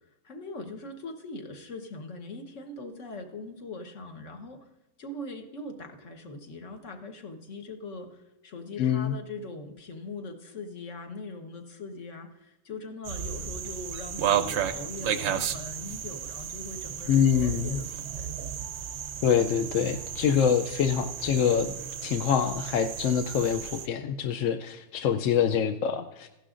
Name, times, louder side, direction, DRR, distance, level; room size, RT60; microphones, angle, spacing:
voice 1, 0.2-4.6 5.0-18.3, left 2 dB, 50° left, 5 dB, 1.4 m, -41 dB
voice 2, 8.8-9.2 17.1-17.8 19.2-21.7 22.0-26.3, left 8 dB, 70° left, 8 dB, 0.8 m, -25 dB
sound 1, 13.0-23.9, right 8 dB, 60° right, 0.7 m, -33 dB
15.5 x 11.5 x 2.5 m, 0.96 s
omnidirectional pair, 1.7 m